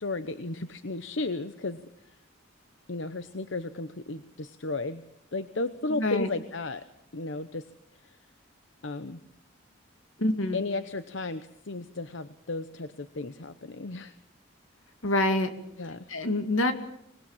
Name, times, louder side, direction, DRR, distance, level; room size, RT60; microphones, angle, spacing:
voice 1, 0.0-1.8 2.1-2.2 2.9-5.0 5.3-6.8 7.1-7.7 8.8-9.2 10.5-14.2 15.8-16.0, left 3 dB, 65° left, 12 dB, 0.9 m, -34 dB
voice 2, 6.0-6.3 10.2-10.6 15.0-15.5 16.1-16.7, left 1 dB, 85° left, 8 dB, 2.4 m, -26 dB
25.0 x 20.0 x 7.3 m, 0.77 s
head